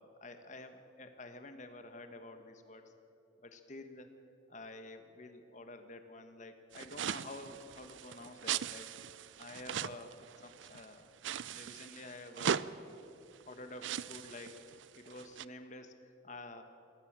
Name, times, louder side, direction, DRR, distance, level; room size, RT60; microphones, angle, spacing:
voice 1, 0.0-2.9 3.4-4.1 4.5-8.9 9.4-10.1 10.4-11.1 11.5-12.7 13.4-14.6 14.9-16.6, left 2 dB, 40° left, 7 dB, 1.4 m, -49 dB
sound 1, 6.7-10.8 11.2-12.7 13.4-13.5 13.8-15.4, right 8 dB, 75° right, 0.5 m, -39 dB
22.0 x 16.5 x 7.5 m, 2.9 s
head